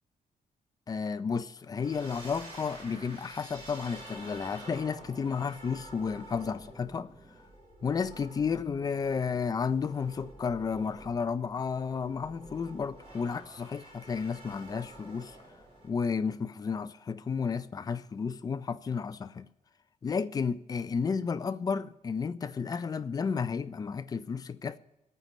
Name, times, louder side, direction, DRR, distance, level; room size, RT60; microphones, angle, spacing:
voice 1, 0.9-7.1 7.8-15.4 15.8-19.5 20.0-24.8, left 5 dB, 25° left, 0.4 m, -32 dB
sound 1, 1.7-15.9, right 1 dB, 40° right, 5.0 m, -49 dB
27.0 x 9.1 x 3.1 m
wide cardioid pair, 170°, 15 cm